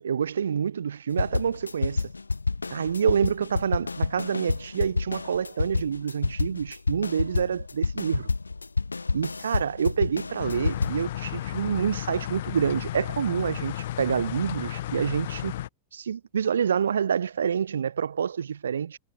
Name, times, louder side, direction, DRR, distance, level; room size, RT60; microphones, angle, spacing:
voice 1, 0.0-2.1 2.7-8.3 9.1-15.5 15.9-19.0, right 7 dB, 70° right, 4.2 m, -27 dB
sound 1, 1.2-11.0, left 3 dB, 80° left, 2.2 m, -29 dB
sound 2, 10.4-15.7, left 13 dB, 55° left, 3.2 m, -33 dB
figure-of-eight pair, 90°, 0 cm